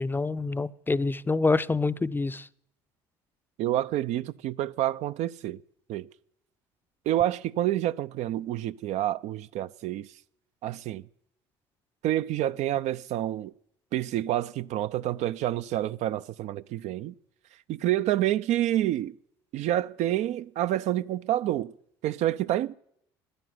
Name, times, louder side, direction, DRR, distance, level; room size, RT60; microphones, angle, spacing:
voice 1, 0.0-2.5, left 3 dB, 15° left, 0.5 m, -26 dB
voice 2, 3.6-5.6 5.9-6.1 7.1-10.1 10.6-11.0 12.0-13.5 13.9-17.1 17.7-19.1 19.5-21.7 22.0-22.8, right 13 dB, 60° right, 0.5 m, -28 dB
12.5 x 10.0 x 9.4 m
hypercardioid pair, 65°, 13 cm